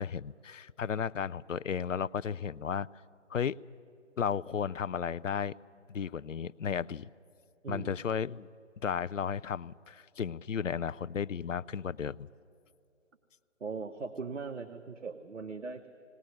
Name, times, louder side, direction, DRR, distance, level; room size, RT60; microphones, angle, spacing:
voice 1, 0.0-2.9 3.3-3.6 4.2-5.5 5.9-7.1 7.7-8.5 8.8-12.3, left 7 dB, 75° left, 19 dB, 0.6 m, -34 dB
voice 2, 7.6-8.0 13.6-15.9, right 4 dB, 70° right, 7 dB, 1.2 m, -39 dB
19.0 x 19.0 x 9.6 m, 2.5 s
figure-of-eight pair, 150°, 38 cm